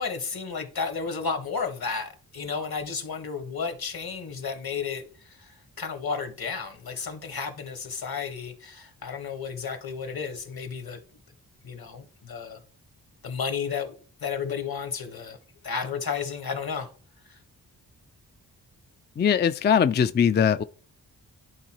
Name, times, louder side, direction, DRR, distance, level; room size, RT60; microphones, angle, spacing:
voice 1, 0.0-5.1 5.8-11.0 11.6-12.6 13.2-13.9 14.2-15.4 15.6-16.9 17.3-17.4, left 5 dB, 60° left, 1.6 m, -32 dB
voice 2, 19.2-20.6, left 7 dB, 25° left, 0.4 m, -21 dB
11.0 x 3.8 x 3.0 m
cardioid pair, 45°, 42 cm